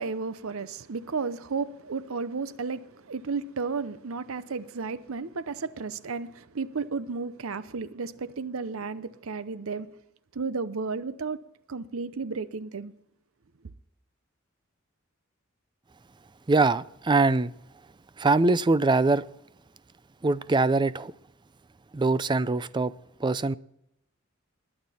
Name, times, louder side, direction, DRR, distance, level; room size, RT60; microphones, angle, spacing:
voice 1, 0.0-9.9 10.3-11.4 11.7-12.9, right 4 dB, 85° right, 0.7 m, -33 dB
voice 2, 16.5-17.5 18.2-19.2 20.2-21.1 21.9-22.9 23.2-23.5, right 3 dB, 20° right, 0.4 m, -23 dB
21.0 x 8.8 x 4.3 m
head